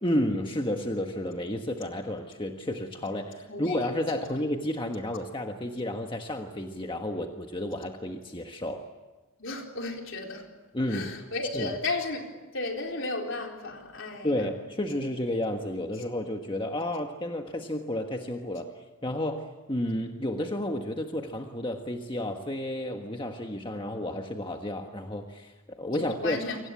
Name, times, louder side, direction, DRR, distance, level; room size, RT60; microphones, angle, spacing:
voice 1, 0.0-8.9 10.7-11.1 11.5-11.8 14.2-26.6, left 1 dB, 25° left, 1.5 m, -31 dB
voice 2, 9.4-10.4 10.9-12.3 12.5-14.3 26.0-26.6, left 3 dB, 60° left, 4.3 m, -33 dB
28.5 x 24.5 x 8.5 m
head